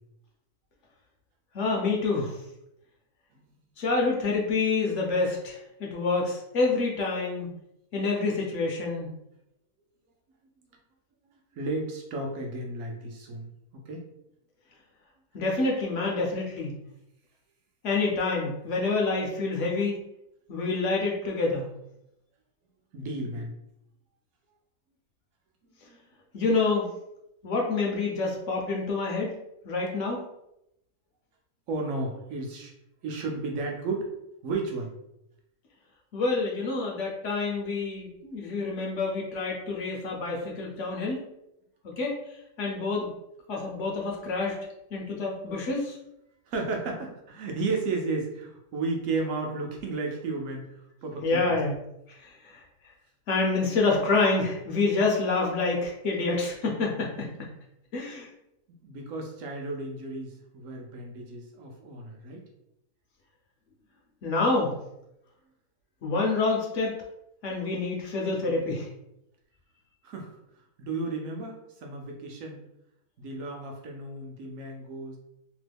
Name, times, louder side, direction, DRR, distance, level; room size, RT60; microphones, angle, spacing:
voice 1, 1.5-2.4 3.8-7.5 7.9-9.1 15.3-16.7 17.8-19.9 20.5-21.6 26.3-26.8 27.4-29.3 29.6-30.2 36.1-41.2 41.8-42.2 42.6-43.1 43.5-44.6 44.9-46.0 51.2-51.8 52.1-52.6 53.3-57.5 57.9-58.3 64.2-64.7 66.0-67.0 67.4-68.9, left 3 dB, 60° left, -1 dB, 0.8 m, -27 dB
voice 2, 11.3-13.5 13.7-14.1 22.9-23.5 25.8-26.0 31.7-32.7 33.0-34.1 34.4-34.9 46.5-51.6 58.7-62.4 70.0-70.4 70.8-72.6 73.2-75.2, right 3 dB, 65° right, 1 dB, 0.9 m, -33 dB
2.9 x 2.1 x 3.3 m, 0.82 s
omnidirectional pair, 1.7 m